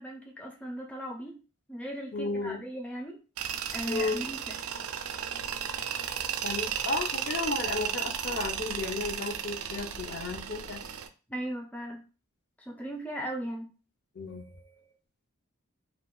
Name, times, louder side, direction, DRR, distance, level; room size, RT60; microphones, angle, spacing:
voice 1, 0.0-1.4 1.7-3.2 3.7-4.6 11.3-12.0 12.7-13.7, right 1 dB, 5° left, 0 dB, 0.4 m, -37 dB
voice 2, 2.1-2.6 3.9-4.2 6.4-10.8 14.2-14.6, left 3 dB, 55° left, 3 dB, 0.6 m, -33 dB
Tools, 3.4-11.1, right 8 dB, 85° right, 0.4 m, -34 dB
2.4 x 2.4 x 3.7 m, 0.34 s
head